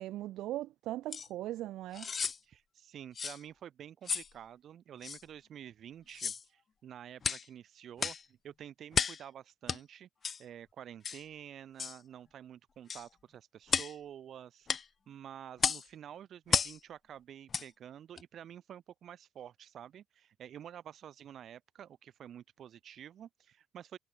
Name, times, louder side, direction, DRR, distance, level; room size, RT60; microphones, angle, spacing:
voice 1, 0.0-2.1, right 15 dB, 80° right, 0.4 m, -39 dB
sound 1, 1.1-1.3 1.9-2.4 3.2-3.4 4.1-4.3 5.0-5.2 6.1-6.4 7.2-7.5 8.0-8.2 8.9-9.2 9.7-9.8 10.2-10.4 11.0-11.2 11.8-12.0 12.9-13.1 13.7-14.0 14.7-14.9 15.6-15.9 16.5-16.8 17.5-17.7 18.2-18.3, left 6 dB, 35° left, 0.4 m, -33 dB
voice 2, 2.4-10.1 10.4-14.7 15.1-24.0, right 10 dB, 55° right, 1.3 m, -49 dB
cardioid pair, 115°, 0 cm